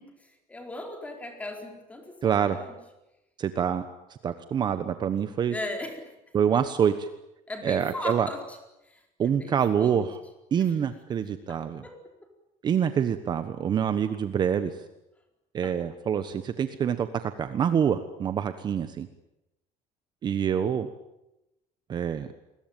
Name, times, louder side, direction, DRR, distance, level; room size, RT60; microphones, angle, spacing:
voice 1, 0.5-2.8 5.5-6.1 7.5-8.6 8.8-10.0 11.5-12.0 15.6-15.8, left 1 dB, 10° left, 4 dB, 4.6 m, -38 dB
voice 2, 2.2-2.6 3.4-3.8 4.2-5.5 6.3-7.1 7.6-8.3 9.2-10.2 10.5-11.8 12.6-14.8 15.5-19.1 20.2-20.9 21.9-22.3, right 8 dB, 30° right, 10 dB, 1.1 m, -26 dB
28.5 x 21.5 x 9.2 m, 0.93 s
cardioid pair, 170°, 14 cm